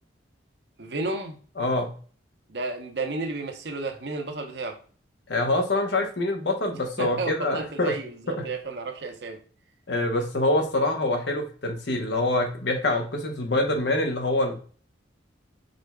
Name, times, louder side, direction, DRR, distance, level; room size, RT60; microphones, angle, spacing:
voice 1, 0.8-1.4 2.5-4.8 7.0-9.4, right 3 dB, 60° right, 4 dB, 0.8 m, -32 dB
voice 2, 1.6-1.9 5.3-7.9 8.3-8.5 9.9-14.5, left 2 dB, 65° left, 4 dB, 0.9 m, -25 dB
5.1 x 4.2 x 2.2 m, 0.42 s
head